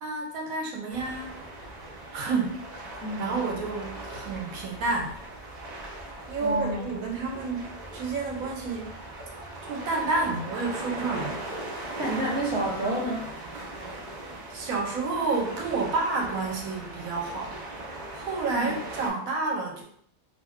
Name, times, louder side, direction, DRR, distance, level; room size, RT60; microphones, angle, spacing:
voice 1, 0.0-1.4 2.1-5.1 6.3-9.0 9.6-11.5 14.5-17.6 18.1-19.8, right 3 dB, 80° right, 1 dB, 1.1 m, -30 dB
sound 1, 0.9-19.1, right 1 dB, 45° right, 0.6 m, -39 dB
voice 2, 6.4-6.8 12.0-13.2 18.5-18.8, right 1 dB, 20° left, -9 dB, 1.1 m, -29 dB
2.5 x 2.4 x 3.5 m, 0.64 s
omnidirectional pair, 1.5 m